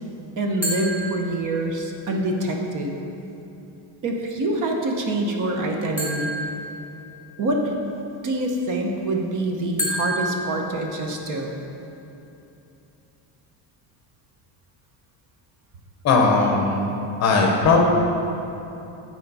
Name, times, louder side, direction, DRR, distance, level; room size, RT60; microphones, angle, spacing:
voice 1, 0.4-3.0 4.0-6.3 7.4-7.7 8.2-11.5, right 1 dB, 40° right, 1 dB, 0.7 m, -25 dB
sound 1, 0.6-1.9 6.0-7.5 9.8-11.5, equal, 5° right, 1.7 m, -31 dB
voice 2, 16.0-16.8 17.2-17.9, left 3 dB, 35° left, 1 dB, 0.7 m, -18 dB
8.3 x 4.5 x 5.3 m, 2.9 s
cardioid pair, 175°, 47 cm